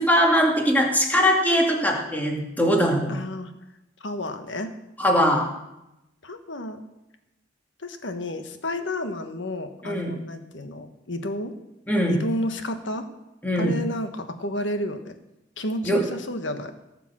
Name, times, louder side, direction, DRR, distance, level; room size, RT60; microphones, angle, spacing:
voice 1, 0.0-3.2 5.0-5.5 9.8-10.1 11.9-12.2 13.4-13.7 15.8-16.0, equal, 10° left, 0 dB, 2.3 m, -21 dB
voice 2, 3.1-3.5 4.0-4.7 6.2-6.8 7.8-11.5 12.1-13.0 13.6-15.1 15.6-16.7, left 1 dB, 75° left, 8 dB, 1.4 m, -31 dB
17.5 x 6.9 x 7.5 m, 0.93 s
head